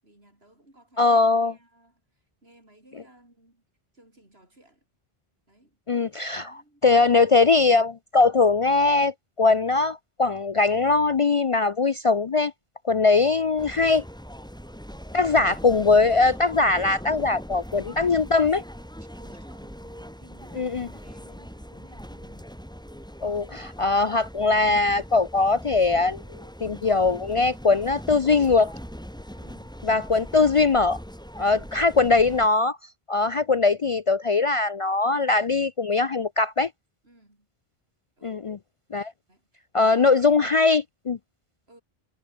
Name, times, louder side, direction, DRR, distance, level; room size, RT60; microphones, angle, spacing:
voice 1, 0.0-3.6 3.9-4.8 5.5-5.8 6.4-7.1 19.2-22.6 29.3-29.8 37.0-37.5 38.2-38.5 39.3-40.5 41.7-41.8, right 1 dB, 80° right, 7.6 m, -57 dB
voice 2, 1.0-1.5 5.9-6.5 6.8-12.5 12.8-14.0 15.1-18.6 20.6-20.9 23.2-28.7 29.8-31.0 31.4-32.8 33.1-36.7 38.2-38.6 38.9-39.1 39.7-41.2, left 3 dB, 45° left, 0.4 m, -21 dB
sound 1, 13.6-32.5, equal, 5° left, 5.2 m, -41 dB
omnidirectional pair, 1.0 m